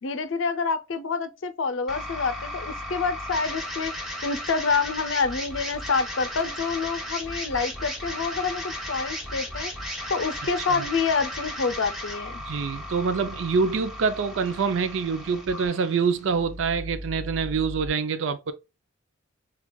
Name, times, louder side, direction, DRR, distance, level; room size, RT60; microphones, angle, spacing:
voice 1, 0.0-3.9 4.2-9.7 10.1-12.4, left 4 dB, 70° left, 0.5 m, -27 dB
sound 1, 1.9-17.9, left 1 dB, ahead, 0.9 m, -35 dB
voice 2, 12.5-18.5, right 5 dB, 65° right, 0.4 m, -26 dB
6.0 x 2.3 x 2.2 m
head